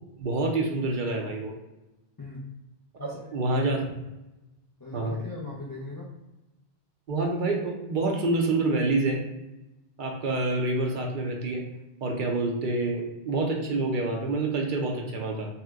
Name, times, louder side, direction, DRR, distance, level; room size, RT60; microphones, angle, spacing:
voice 1, 0.2-1.5 3.3-3.8 4.9-5.2 7.1-9.2 10.0-11.6 12.0-15.5, right 2 dB, 60° right, 1 dB, 0.6 m, -27 dB
voice 2, 2.2-2.5 3.0-3.4 4.8-6.2, left 2 dB, 35° left, -5 dB, 0.3 m, -39 dB
2.8 x 2.1 x 3.4 m, 0.99 s
omnidirectional pair, 1.0 m